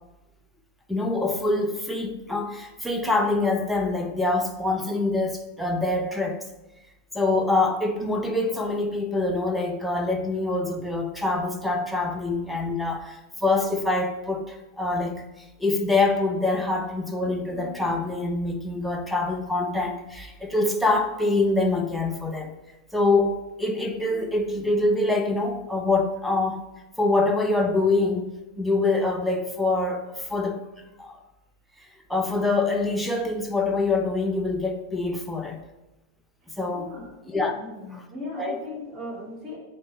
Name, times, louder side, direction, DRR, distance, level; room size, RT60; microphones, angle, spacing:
voice 1, 0.9-6.5 7.1-15.3 15.6-22.5 22.9-26.6 27.0-28.3 28.6-30.6 31.0-31.2 32.1-35.6 36.6-36.9 37.2-37.6 37.9-38.0 38.4-38.6, left 2 dB, ahead, 2 dB, 0.7 m, -25 dB
voice 2, 36.7-39.6, left 2 dB, 25° right, -3 dB, 2.4 m, -38 dB
8.9 x 3.1 x 4.4 m, 0.99 s
figure-of-eight pair, 90°, 0 cm